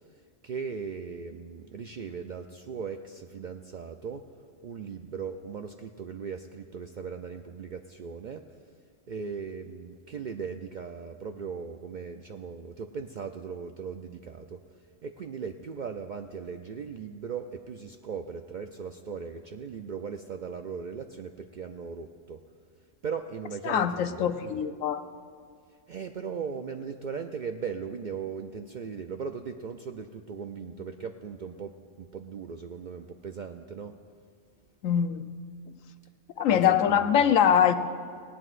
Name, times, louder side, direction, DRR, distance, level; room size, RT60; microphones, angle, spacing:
voice 1, 0.4-4.2 4.6-8.4 9.1-14.6 15.0-22.4 23.0-24.6 25.9-33.9 36.5-37.1, right 6 dB, 65° right, 5 dB, 0.4 m, -38 dB
voice 2, 23.6-25.0 34.8-35.3 36.4-37.7, left 8 dB, 90° left, 10 dB, 1.0 m, -23 dB
18.5 x 18.0 x 2.5 m, 2.1 s
omnidirectional pair, 1.3 m